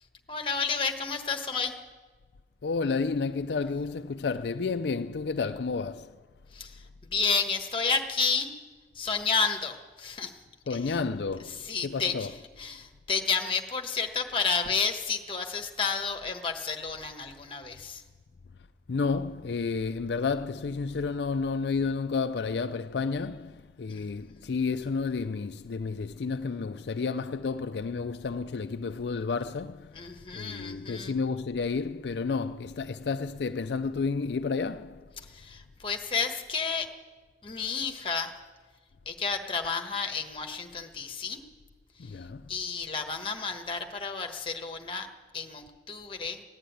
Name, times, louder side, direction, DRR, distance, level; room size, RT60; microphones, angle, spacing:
voice 1, 0.3-1.8 6.5-6.8 7.1-8.5 8.9-10.4 10.7-11.0 11.5-12.3 12.6-18.0 23.9-24.4 29.9-31.2 35.2-36.9 37.4-38.3 39.0-41.4 42.0-45.1 45.3-46.4, left 5 dB, 30° left, 1.3 m, -31 dB
voice 2, 2.6-6.2 10.7-12.3 18.9-35.1 42.0-42.5, left 4 dB, 75° left, 0.4 m, -31 dB
16.0 x 10.0 x 9.2 m
head